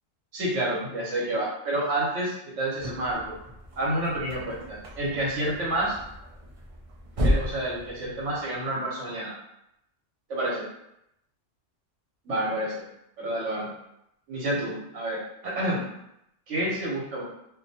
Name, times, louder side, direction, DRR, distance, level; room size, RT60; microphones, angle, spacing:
voice 1, 0.3-3.3 3.8-6.0 7.2-9.3 10.3-10.7 12.2-12.9 13.2-13.7 14.3-15.9 16.5-17.2, right 1 dB, 85° right, -5 dB, 1.2 m, -29 dB
sound 1, 2.8-8.6, equal, 60° right, 0.3 m, -33 dB
2.6 x 2.2 x 2.7 m, 0.80 s
omnidirectional pair, 1.2 m